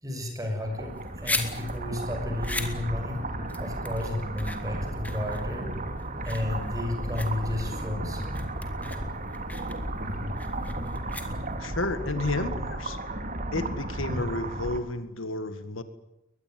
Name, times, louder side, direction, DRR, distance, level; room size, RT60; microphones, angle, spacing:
voice 1, 0.0-3.2 3.6-5.7 6.2-8.2, left 2 dB, 20° right, 4 dB, 6.5 m, -32 dB
sound 1, 0.6-14.8, right 1 dB, 40° right, 2.5 m, -34 dB
sound 2, 0.8-11.8, left 2 dB, 10° left, 2.5 m, -38 dB
voice 2, 11.6-13.0 13.5-15.8, left 2 dB, 85° left, 11 dB, 1.9 m, -31 dB
22.5 x 20.0 x 9.3 m, 0.91 s
head